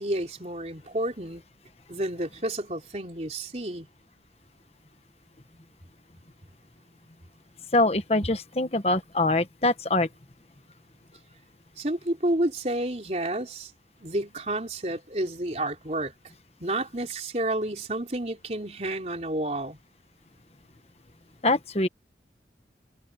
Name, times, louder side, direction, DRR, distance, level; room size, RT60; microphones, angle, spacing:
voice 1, 0.0-1.4 1.9-3.9 11.8-13.7 14.0-16.1 16.6-19.8, right 1 dB, 40° right, 3.9 m, -30 dB
voice 2, 7.7-10.1 21.4-21.9, left 2 dB, 35° left, 1.3 m, -24 dB
head